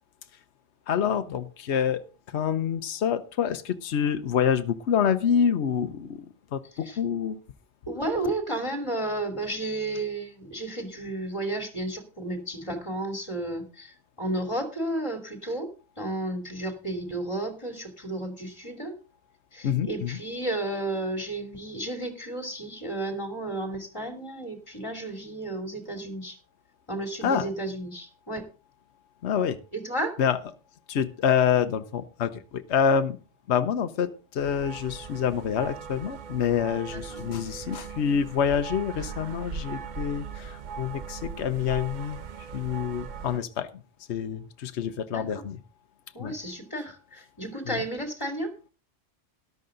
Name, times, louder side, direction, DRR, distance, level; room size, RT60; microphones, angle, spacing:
voice 1, 0.9-7.4 19.6-20.2 27.2-27.5 29.2-29.6 30.2-30.4 30.9-33.2 33.5-42.2 42.5-43.7 44.1-45.6 46.2-46.3 47.7-47.8, left 8 dB, 75° left, 10 dB, 1.1 m, -27 dB
voice 2, 7.9-15.7 16.0-18.9 19.5-26.4 26.9-28.5 29.7-30.2 36.9-37.2 45.1-45.4 46.1-48.5, right 1 dB, 25° left, 6 dB, 2.6 m, -32 dB
sound 1, 34.4-43.4, right 6 dB, 50° right, 0.8 m, -39 dB
13.5 x 12.0 x 3.8 m, 0.33 s
omnidirectional pair, 1.1 m